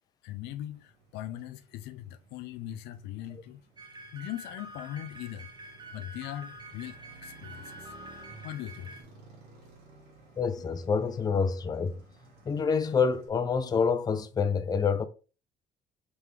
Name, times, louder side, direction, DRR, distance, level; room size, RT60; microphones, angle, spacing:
voice 1, 0.2-3.7 4.1-7.9 8.4-9.0, left 12 dB, 85° left, 0.5 m, -40 dB
Motorcycle, 0.7-13.3, right 3 dB, 75° right, 1.7 m, -55 dB
sound 1, 3.8-9.0, right 1 dB, 25° right, 1.0 m, -47 dB
voice 2, 10.4-12.0 12.5-15.1, left 5 dB, 25° left, 0.4 m, -27 dB
3.8 x 3.4 x 3.2 m
cardioid pair, 110°, 17 cm